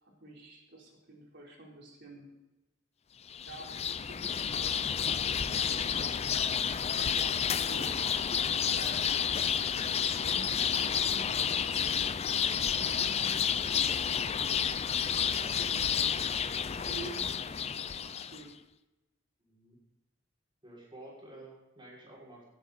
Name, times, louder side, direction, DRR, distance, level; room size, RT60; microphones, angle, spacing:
voice 1, 0.0-2.3 3.5-3.8 4.1-6.4 7.0-12.1 12.6-13.5 15.3-16.2 16.8-18.5, right 2 dB, 60° right, -1 dB, 3.9 m, -49 dB
sound 1, 3.3-18.4, left 8 dB, 30° left, 0.5 m, -30 dB
voice 2, 19.4-19.8 20.6-22.4, right 1 dB, 25° right, -5 dB, 6.0 m, -51 dB
18.0 x 10.0 x 4.2 m, 1.0 s
head